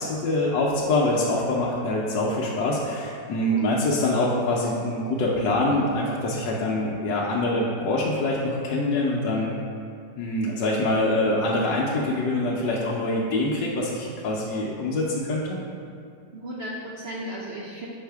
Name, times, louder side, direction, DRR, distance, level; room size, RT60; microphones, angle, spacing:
voice 1, 0.0-9.5 10.2-15.6, left 2 dB, 80° left, -4 dB, 1.3 m, -25 dB
voice 2, 16.3-17.9, equal, 80° right, -3 dB, 0.5 m, -35 dB
5.6 x 4.1 x 4.6 m, 2.3 s
omnidirectional pair, 1.9 m